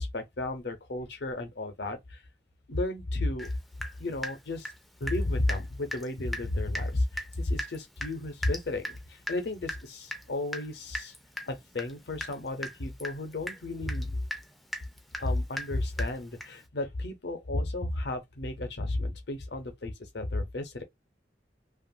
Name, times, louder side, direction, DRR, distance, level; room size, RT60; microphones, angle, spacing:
voice 1, 0.0-2.2 2.7-3.5 4.0-4.7 5.0-11.1 11.5-14.2 15.2-20.8, left 2 dB, 65° left, 0.7 m, -33 dB
Water tap faucet / Drip, 3.4-3.5 3.8-5.2 5.5-5.6 5.9-6.1 6.3-6.5 6.7-6.9 7.2-16.6, equal, ahead, 0.4 m, -38 dB
2.9 x 2.4 x 2.5 m
head